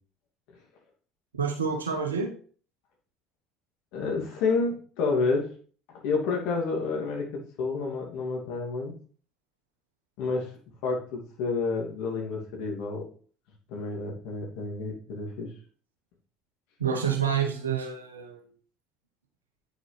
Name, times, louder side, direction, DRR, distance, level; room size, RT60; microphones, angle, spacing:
voice 1, 1.3-2.3 16.8-18.5, right 6 dB, 90° right, 3 dB, 1.3 m, -28 dB
voice 2, 3.9-5.5 5.9-8.9 10.2-10.5 10.8-13.1 13.7-15.5, left 4 dB, 65° left, 0 dB, 2.7 m, -29 dB
9.1 x 6.4 x 3.4 m, 0.43 s
hypercardioid pair, 65°, 0 cm